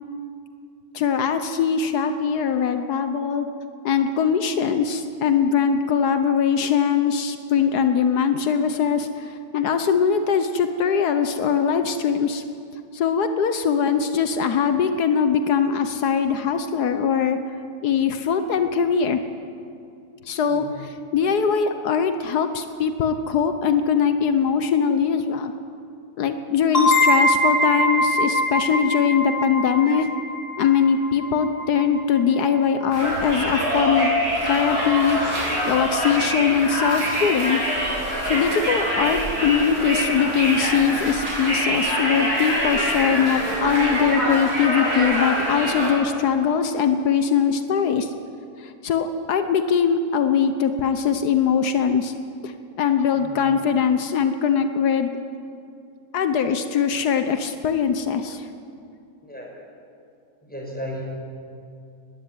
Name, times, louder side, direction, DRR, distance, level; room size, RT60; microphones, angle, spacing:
voice 1, 0.9-3.5 3.8-12.4 12.9-17.4 17.8-19.2 20.3-25.5 26.2-30.1 30.6-34.1 34.4-35.2 35.6-37.6 38.2-48.1 48.6-52.1 52.4-55.1 56.1-58.5, left 7 dB, 80° left, 8 dB, 1.5 m, -21 dB
sound 1, 26.7-32.2, left 1 dB, 25° left, 4.7 m, -23 dB
Conversation, 32.9-45.9, equal, 55° right, 8.2 m, -24 dB
voice 2, 60.4-61.0, equal, 5° left, -2 dB, 6.1 m, -35 dB
20.0 x 16.0 x 9.8 m, 2.5 s
omnidirectional pair, 1.7 m